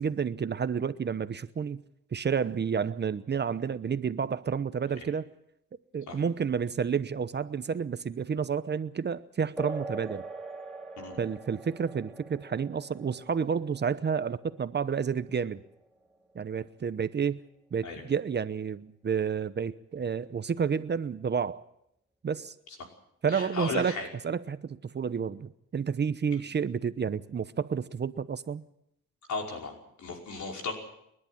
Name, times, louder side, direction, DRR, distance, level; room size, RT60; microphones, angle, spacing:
voice 1, 0.0-1.8 2.1-5.3 5.9-10.2 11.2-15.6 16.3-17.4 17.7-21.6 22.2-22.5 23.2-24.0 24.2-28.6, right 6 dB, 35° right, 0.9 m, -30 dB
sound 1, 9.6-17.6, right 2 dB, ahead, 4.6 m, -44 dB
voice 2, 23.3-24.1 29.3-30.7, left 3 dB, 65° left, 5.4 m, -36 dB
29.0 x 11.0 x 9.2 m
cardioid pair, 90°, 30 cm